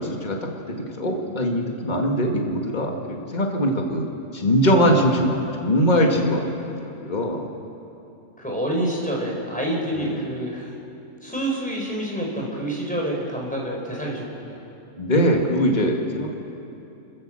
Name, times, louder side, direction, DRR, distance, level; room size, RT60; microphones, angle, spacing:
voice 1, 0.0-4.1 4.3-7.5 9.9-10.1 15.0-16.4, equal, 30° left, 2 dB, 2.0 m, -22 dB
voice 2, 8.4-10.7 11.2-14.6, right 1 dB, 5° left, -2 dB, 4.6 m, -27 dB
29.0 x 14.0 x 7.6 m, 2.8 s
omnidirectional pair, 1.5 m